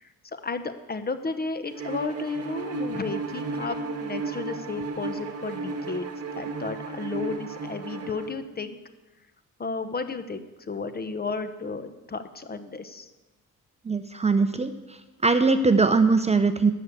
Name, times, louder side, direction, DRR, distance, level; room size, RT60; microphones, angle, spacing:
voice 1, 0.4-6.1 6.4-8.8 9.6-13.1, left 4 dB, 30° left, 11 dB, 0.9 m, -33 dB
Bowed string instrument, 1.8-8.3, right 3 dB, 45° right, 1.6 m, -34 dB
voice 2, 13.9-14.7 15.2-16.7, right 4 dB, 20° right, 9 dB, 0.6 m, -21 dB
12.5 x 6.3 x 8.1 m, 1.1 s
cardioid pair, 105°, 33 cm